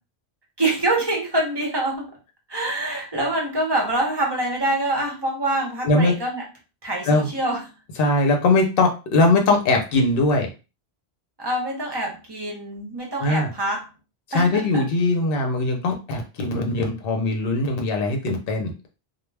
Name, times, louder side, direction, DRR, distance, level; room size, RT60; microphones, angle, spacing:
voice 1, 0.6-2.2 2.5-6.4 6.8-7.6 11.4-13.9 14.3-14.8, right 1 dB, 25° right, -1 dB, 0.7 m, -25 dB
voice 2, 8.0-10.5 13.2-13.5 14.3-18.7, left 2 dB, 60° left, 3 dB, 0.8 m, -20 dB
2.2 x 2.2 x 3.2 m, 0.31 s
omnidirectional pair, 1.1 m